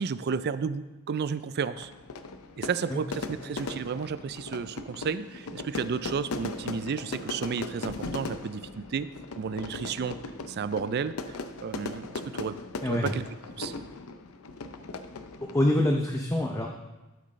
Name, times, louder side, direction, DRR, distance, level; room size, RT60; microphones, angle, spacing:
voice 1, 0.0-1.9 2.6-9.1 9.4-10.2 10.5-11.1 11.6-12.6 12.9-13.2 13.6-13.7, right 6 dB, 50° right, 14 dB, 0.4 m, -32 dB
Fire / Fireworks, 1.8-15.8, left 3 dB, 75° left, 0.6 m, -38 dB
voice 2, 15.4-16.7, left 1 dB, 15° left, 1 dB, 0.6 m, -26 dB
12.5 x 7.9 x 3.2 m, 1.1 s
head